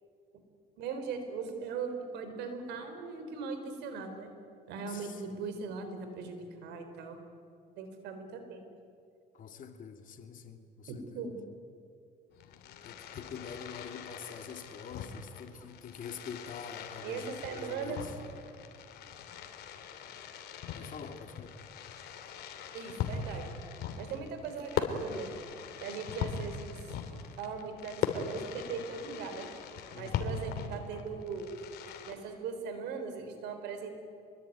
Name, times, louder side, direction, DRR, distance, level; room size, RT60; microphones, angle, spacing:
voice 1, 0.8-4.3 4.7-7.2 7.8-8.6 10.9-11.4 17.0-18.0 22.7-23.5 24.0-25.3 25.8-26.8 27.4-29.5 29.9-31.5 32.0-34.0, right 5 dB, 85° right, 4.4 m, -39 dB
voice 2, 4.9-5.2 9.3-11.3 12.8-18.1 20.7-21.6 29.9-30.4, left 6 dB, 50° left, 2.6 m, -46 dB
Fireworks, 12.3-32.1, left 6 dB, 70° left, 3.0 m, -40 dB
25.5 x 22.0 x 9.5 m
cardioid pair, 110°, 17 cm